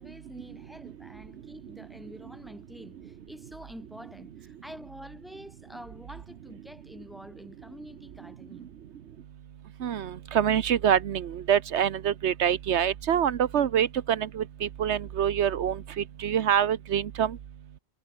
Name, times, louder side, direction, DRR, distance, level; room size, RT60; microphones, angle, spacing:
voice 1, 0.0-8.7, equal, ahead, 5.0 m, -47 dB
voice 2, 9.8-15.8 16.2-17.4, right 9 dB, 85° right, 1.2 m, -25 dB
omnidirectional pair, 1.1 m